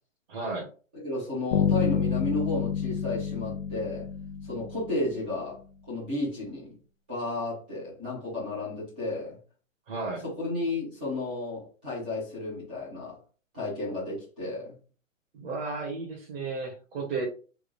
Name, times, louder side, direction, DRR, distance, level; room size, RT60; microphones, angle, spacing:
voice 1, 0.3-0.7 9.9-10.2 15.3-17.2, right 3 dB, 45° right, 1.3 m, -33 dB
voice 2, 0.9-4.1 4.4-5.6 5.9-6.8 7.1-9.4 10.2-13.2 13.5-14.8, left 2 dB, 10° right, 0.4 m, -33 dB
Bass guitar, 1.5-5.3, left 8 dB, 50° left, 0.8 m, -28 dB
3.6 x 2.4 x 3.1 m
hypercardioid pair, 155°, 40 cm